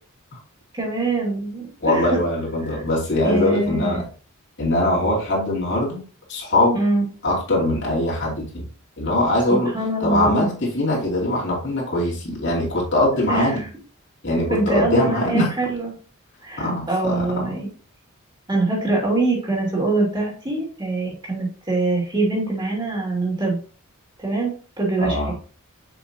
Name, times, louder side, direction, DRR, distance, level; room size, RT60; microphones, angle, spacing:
voice 1, 0.7-2.2 2.7-2.8 3.2-4.0 6.7-7.0 9.6-10.5 13.3-13.7 14.5-15.9 16.4-17.7 18.5-23.6 24.2-25.3, right 2 dB, 20° right, -2 dB, 2.5 m, -24 dB
voice 2, 1.8-4.0 4.6-6.0 6.3-6.8 7.2-8.7 9.0-9.7 10.0-13.6 14.2-15.5 16.6-17.6 25.0-25.3, left 1 dB, 55° left, -4 dB, 2.8 m, -22 dB
7.1 x 5.7 x 2.9 m, 0.39 s
head